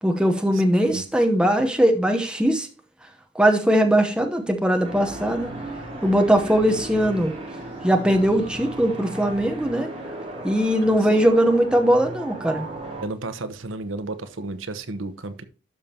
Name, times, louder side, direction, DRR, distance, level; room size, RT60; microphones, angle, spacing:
voice 1, 0.0-2.7 3.3-5.5 6.0-7.3 7.8-9.9 10.4-12.7, equal, 5° right, 0.9 m, -20 dB
voice 2, 0.5-1.0 13.0-15.4, right 2 dB, 80° right, 0.9 m, -33 dB
sound 1, 4.8-13.0, right 1 dB, 30° right, 2.7 m, -36 dB
12.5 x 5.2 x 2.9 m
head